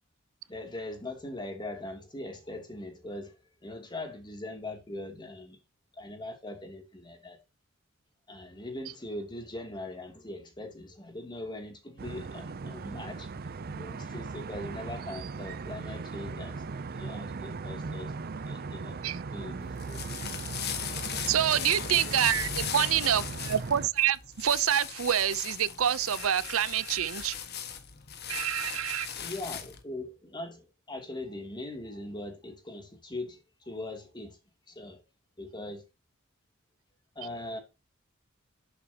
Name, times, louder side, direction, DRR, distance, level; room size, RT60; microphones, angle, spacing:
voice 1, 0.5-3.4 3.6-5.6 5.9-7.4 8.3-13.3 13.7-16.6 16.9-18.1 18.5-20.1 29.2-34.4 34.7-35.0 35.4-35.8 37.1-37.6, left 2 dB, 20° left, 2.8 m, -41 dB
sound 1, 12.0-23.9, right 4 dB, 45° right, 0.5 m, -38 dB
sound 2, 19.6-29.8, left 8 dB, 50° left, 1.6 m, -38 dB
voice 2, 21.3-27.4 28.3-29.1, right 10 dB, 85° right, 0.6 m, -27 dB
11.0 x 7.9 x 2.9 m
head